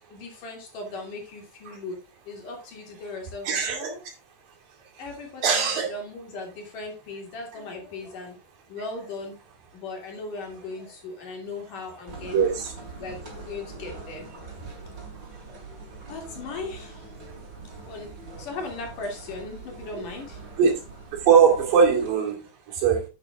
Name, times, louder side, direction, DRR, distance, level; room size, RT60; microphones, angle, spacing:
voice 1, 0.1-4.0 5.0-8.4 8.7-9.4 9.7-12.6 13.0-14.9 16.1-20.4, left 3 dB, 70° left, 2 dB, 4.4 m, -38 dB
voice 2, 3.5-3.9 5.4-5.9 12.3-12.7 20.6-20.8 21.2-23.1, right 6 dB, 85° right, 1 dB, 4.3 m, -21 dB
sound 1, 12.1-22.1, right 3 dB, 35° right, 3.4 m, -43 dB
9.2 x 8.7 x 3.6 m, 0.29 s
omnidirectional pair, 3.9 m